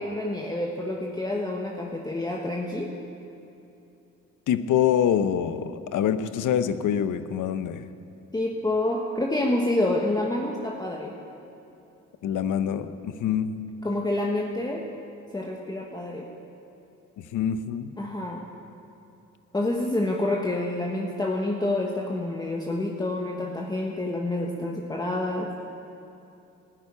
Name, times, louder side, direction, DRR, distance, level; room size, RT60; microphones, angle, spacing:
voice 1, 0.0-2.9 8.3-11.1 13.8-14.8 15.3-16.3 18.0-18.4 19.5-25.5, left 1 dB, 15° left, -1 dB, 1.3 m, -28 dB
voice 2, 4.5-7.9 12.2-13.5 17.2-17.9, left 9 dB, 70° left, 11 dB, 0.9 m, -25 dB
13.0 x 10.5 x 9.7 m, 2.8 s
cardioid pair, 90°, 32 cm